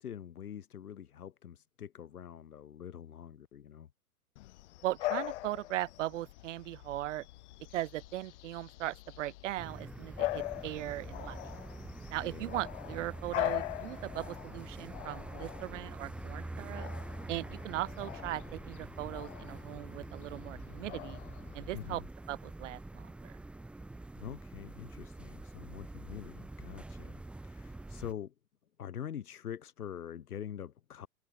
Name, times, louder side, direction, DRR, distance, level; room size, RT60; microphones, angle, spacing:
voice 1, 0.0-3.9 12.2-12.6 21.7-22.1 24.1-28.3 28.8-31.1, left 9 dB, 80° left, 3.4 m, -45 dB
Bark / Bird vocalization bird call bird song, 4.4-21.9, left 18 dB, 50° left, 2.0 m, -42 dB
voice 2, 4.8-7.3 7.7-11.5 12.1-16.9 17.3-21.2 21.5-22.0 22.3-23.3, right 15 dB, 55° right, 0.7 m, -39 dB
sound 1, 9.6-28.1, right 2 dB, 5° right, 0.7 m, -45 dB
hypercardioid pair, 135°, 44 cm